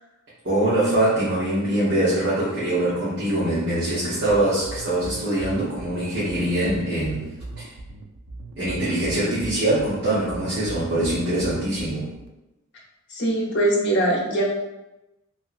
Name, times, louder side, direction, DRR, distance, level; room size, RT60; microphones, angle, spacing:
voice 1, 0.4-7.7 8.6-12.1, right 1 dB, 55° right, -11 dB, 0.9 m, -23 dB
sound 1, 4.3-12.3, right 2 dB, 70° right, 0.4 m, -38 dB
voice 2, 13.1-14.4, right 1 dB, 55° left, -3 dB, 0.7 m, -22 dB
2.8 x 2.7 x 2.4 m, 0.97 s
head